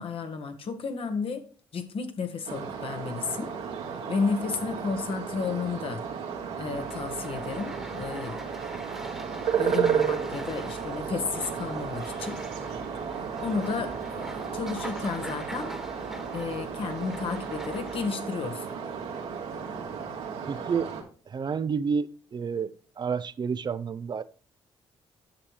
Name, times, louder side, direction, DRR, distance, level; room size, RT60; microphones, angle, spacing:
voice 1, 0.0-1.5 1.7-3.5 4.1-6.0 6.6-8.5 9.5-12.4 13.4-15.7 16.3-18.7, left 5 dB, 60° left, 1.4 m, -32 dB
sound 1, 2.5-21.0, right 7 dB, 85° right, 2.0 m, -33 dB
sound 2, 6.7-18.1, right 1 dB, 5° right, 1.4 m, -43 dB
voice 2, 20.5-20.9 21.3-22.1 22.3-22.7 23.0-24.2, right 6 dB, 45° right, 0.5 m, -29 dB
10.0 x 6.8 x 3.2 m
supercardioid pair, 60°, 11 cm